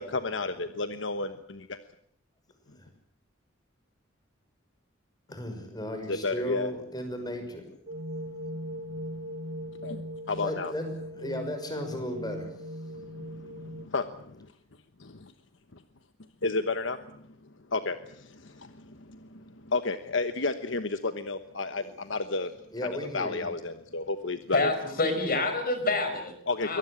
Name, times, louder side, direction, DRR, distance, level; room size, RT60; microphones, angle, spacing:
voice 1, 0.0-1.8 6.1-6.7 9.8-10.7 12.9-14.5 15.0-15.3 16.4-17.2 17.7-22.5 23.1-24.7 26.5-26.8, left 3 dB, 70° left, 10 dB, 1.2 m, -32 dB
voice 2, 5.3-7.7 10.4-12.5 21.7-21.9 22.7-23.4, equal, 20° left, 6 dB, 6.0 m, -35 dB
sound 1, 7.9-13.8, equal, 60° right, 3.2 m, -39 dB
voice 3, 24.5-26.3 26.6-26.8, left 2 dB, 50° left, 8 dB, 5.7 m, -27 dB
23.5 x 18.5 x 8.7 m, 0.68 s
head